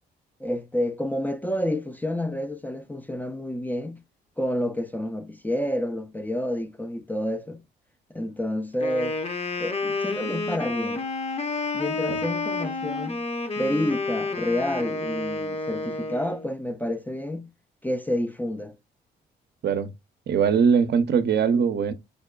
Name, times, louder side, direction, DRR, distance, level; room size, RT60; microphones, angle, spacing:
voice 1, 0.4-4.0 4.4-7.6 8.1-9.2 9.6-11.0 11.7-13.2 13.6-17.5 17.8-18.8, left 1 dB, 10° left, 0.3 m, -29 dB
Wind instrument woodwind instrument, 8.7-16.5, left 3 dB, 30° left, 0.7 m, -30 dB
voice 2, 20.3-21.9, right 6 dB, 55° right, 0.5 m, -21 dB
5.0 x 2.1 x 2.2 m
supercardioid pair, 55°, 20 cm